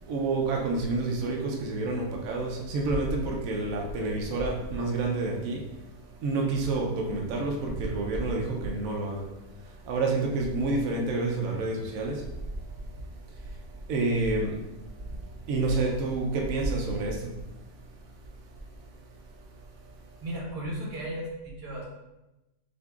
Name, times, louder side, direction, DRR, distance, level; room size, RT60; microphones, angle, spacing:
voice 1, 0.0-5.6 6.2-9.3 9.6-12.3 12.8-12.9 13.9-14.6 15.1-15.2 15.5-17.3 19.8-19.9, right 3 dB, 65° right, -1 dB, 1.0 m, -28 dB
voice 2, 20.2-21.8, right 1 dB, 80° right, -3 dB, 1.7 m, -35 dB
6.4 x 2.6 x 2.4 m, 0.99 s
omnidirectional pair, 1.8 m